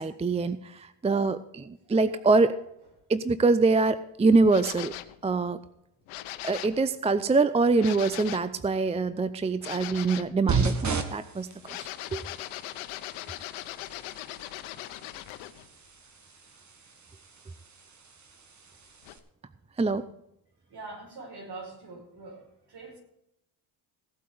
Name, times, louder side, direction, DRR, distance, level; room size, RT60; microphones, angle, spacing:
voice 1, 0.0-2.6 3.1-4.9 5.2-5.6 6.4-12.2 19.8-20.0, right 3 dB, 15° right, 13 dB, 0.5 m, -24 dB
sound 1, 4.5-5.2 6.1-6.8 7.8-8.5 9.6-10.3 11.6-15.7 19.0-19.1, left 15 dB, 90° left, 1.0 m, -39 dB
sound 2, 10.5-19.2, right 5 dB, 35° right, 1.8 m, -35 dB
voice 2, 20.7-23.0, right 3 dB, 55° right, 2 dB, 5.4 m, -43 dB
17.0 x 8.4 x 5.1 m, 0.83 s
cardioid pair, 90°, 47 cm